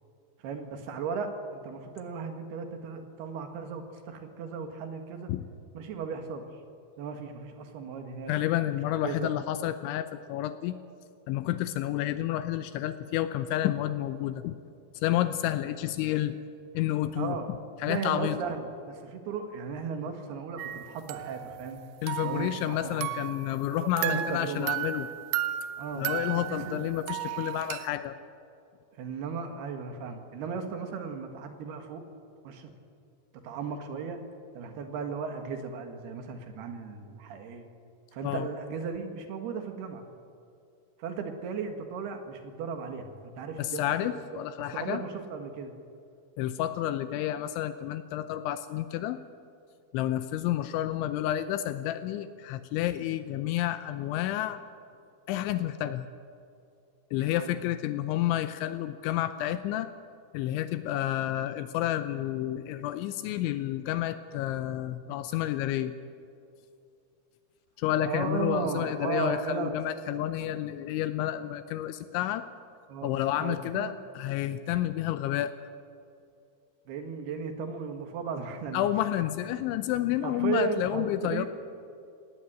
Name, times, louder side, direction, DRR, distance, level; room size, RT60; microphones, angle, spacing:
voice 1, 0.4-5.3 5.7-6.4 7.0-8.3 9.0-9.3 17.1-17.5 17.8-21.8 22.2-23.1 23.7-24.7 25.8-26.9 29.0-32.0 32.4-32.7 33.4-34.2 34.5-37.7 38.1-40.0 41.0-44.2 44.6-45.7 50.0-50.1 57.2-57.6 68.0-70.6 72.9-73.9 76.9-78.9 79.5-79.6 80.2-81.5, right 5 dB, 65° right, 6 dB, 3.2 m, -36 dB
voice 2, 8.3-10.8 11.3-14.6 14.9-16.4 16.7-17.4 17.8-18.4 22.0-25.1 26.0-28.2 38.2-38.5 43.6-45.0 46.4-49.2 49.9-54.6 55.3-56.1 57.1-59.9 60.3-65.9 67.8-72.5 73.0-75.5 78.7-81.5, left 13 dB, 80° left, 11 dB, 2.9 m, -30 dB
sound 1, 20.6-21.8 22.1-23.5 24.0-27.9, right 12 dB, 80° right, 2.3 m, -34 dB
18.0 x 18.0 x 9.0 m, 2.5 s
omnidirectional pair, 5.6 m